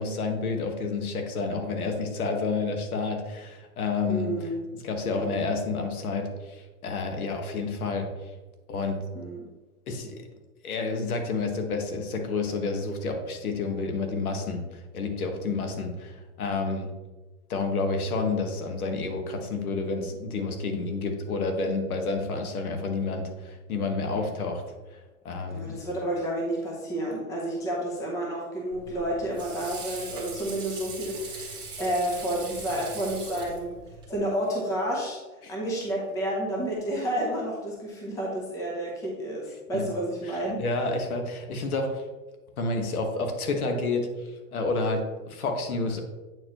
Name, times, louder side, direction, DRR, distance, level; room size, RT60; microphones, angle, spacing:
voice 1, 0.0-4.3 4.8-8.1 8.7-9.0 9.9-10.2 10.6-16.9 17.5-24.6 25.2-25.8 35.4-35.5 39.7-39.8 40.6-42.0 42.6-46.0, left 3 dB, 70° left, 4 dB, 1.5 m, -29 dB
voice 2, 4.1-4.6 5.0-5.2 9.1-9.4 25.5-40.6, right 1 dB, 5° left, -3 dB, 0.8 m, -30 dB
Water / Sink (filling or washing), 28.7-34.2, right 4 dB, 10° right, 1.2 m, -40 dB
8.6 x 4.6 x 3.0 m, 1.2 s
hypercardioid pair, 155°, 44 cm